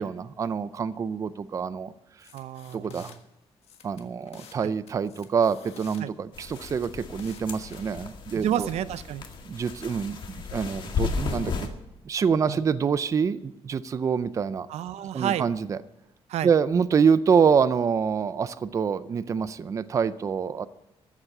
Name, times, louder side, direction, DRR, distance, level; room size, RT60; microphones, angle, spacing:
voice 1, 0.0-1.9 2.7-3.1 3.8-8.7 9.5-11.7 12.0-14.7 15.1-15.8 16.4-20.7, right 6 dB, 30° right, 15 dB, 0.4 m, -26 dB
sound 1, 2.2-3.2 3.6-4.6 4.9-6.0 6.5-7.9, left 8 dB, 70° left, 1.5 m, -50 dB
voice 2, 2.3-3.1 4.6-4.7 6.0-6.1 8.3-9.2 12.5-12.6 14.7-15.5 16.3-16.5, right 11 dB, 85° right, 15 dB, 0.6 m, -30 dB
sound 2, 6.3-11.7, left 5 dB, 45° left, 1.7 m, -34 dB
14.5 x 7.3 x 8.9 m, 0.93 s
cardioid pair, 165°, 11 cm